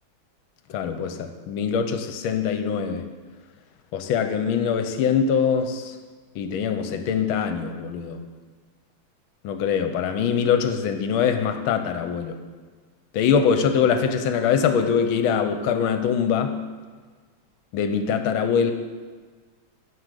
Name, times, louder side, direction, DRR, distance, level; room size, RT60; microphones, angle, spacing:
voice 1, 0.7-3.0 3.9-5.9 6.4-8.2 9.4-12.4 13.1-16.5 17.7-18.7, left 7 dB, 75° left, 8 dB, 1.4 m, -23 dB
9.7 x 5.1 x 6.6 m, 1.5 s
omnidirectional pair, 2.4 m